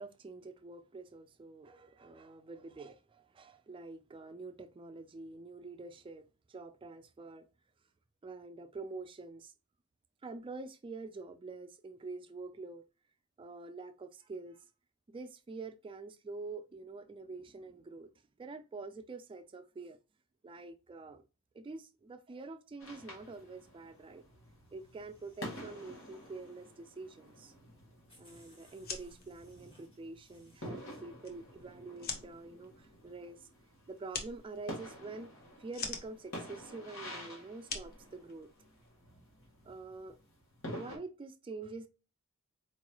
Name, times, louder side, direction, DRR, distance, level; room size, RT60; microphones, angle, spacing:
voice 1, 0.0-7.4 8.2-9.5 10.2-12.8 13.4-14.7 15.1-18.1 18.4-20.0 20.4-21.2 21.5-24.2 24.7-27.5 28.2-33.5 33.9-35.3 35.6-38.5 39.6-40.2 40.7-41.9, right 3 dB, 25° right, 0.3 m, -46 dB
sound 1, 22.8-41.0, equal, 75° left, 1.6 m, -49 dB
sound 2, 24.7-27.0 27.7-27.8 28.1-31.0, equal, 25° left, 1.4 m, -65 dB
sound 3, 28.8-38.9, left 5 dB, 45° left, 0.8 m, -46 dB
4.6 x 3.0 x 2.2 m
head